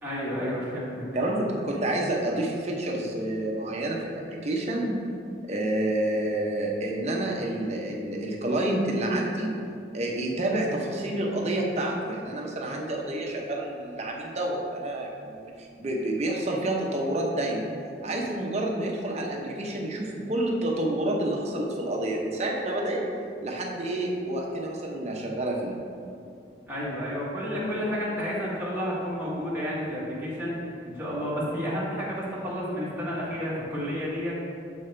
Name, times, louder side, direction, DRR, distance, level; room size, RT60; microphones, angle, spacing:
voice 1, 0.0-1.0 26.7-34.3, equal, 10° right, -8 dB, 1.5 m, -31 dB
voice 2, 1.1-5.0 5.4-9.5 9.9-17.7 18.0-23.0 23.4-25.8, right 1 dB, 35° right, -1 dB, 0.8 m, -29 dB
7.3 x 5.4 x 3.3 m, 2.5 s
head